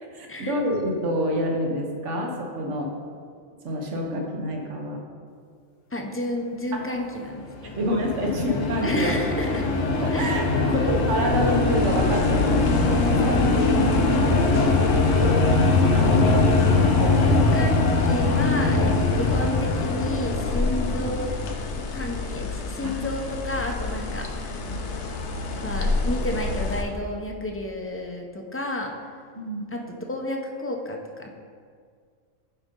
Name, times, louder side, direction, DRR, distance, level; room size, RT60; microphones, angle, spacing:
voice 1, 0.0-2.9 3.6-5.0 6.7-6.8 7.8-9.1 10.0-14.9 15.2-16.2 16.8-17.3 24.6-24.8 29.3-29.7, equal, 75° right, 1 dB, 1.4 m, -28 dB
voice 2, 5.9-7.8 8.8-9.7 10.1-10.5 10.7-10.9 17.2-21.3 21.9-24.7 25.6-28.9 29.7-31.3, left 1 dB, 15° left, 2 dB, 0.5 m, -31 dB
sound 1, 7.5-22.0, left 3 dB, 90° left, 1.2 m, -22 dB
sound 2, 10.9-26.8, left 3 dB, 70° left, 1.1 m, -31 dB
11.5 x 5.2 x 3.7 m, 2.1 s
omnidirectional pair, 1.3 m